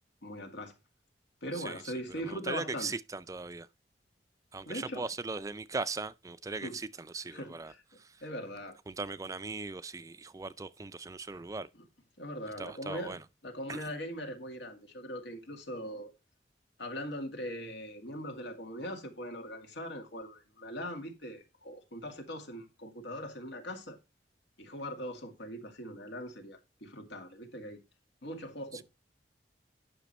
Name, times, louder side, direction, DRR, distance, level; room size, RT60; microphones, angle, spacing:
voice 1, 0.2-0.7 1.4-2.9 4.7-5.1 6.6-6.8 7.3-7.8 8.2-8.8 12.2-13.2 13.4-16.1 16.8-24.0 24.6-27.8 28.2-28.8, equal, 80° left, 2.3 m, -41 dB
voice 2, 1.5-1.9 2.2-3.7 4.5-8.2 8.9-11.7 12.6-13.2 13.7-13.8 28.7-28.8, right 3 dB, 20° right, 0.4 m, -39 dB
10.0 x 6.0 x 4.2 m
head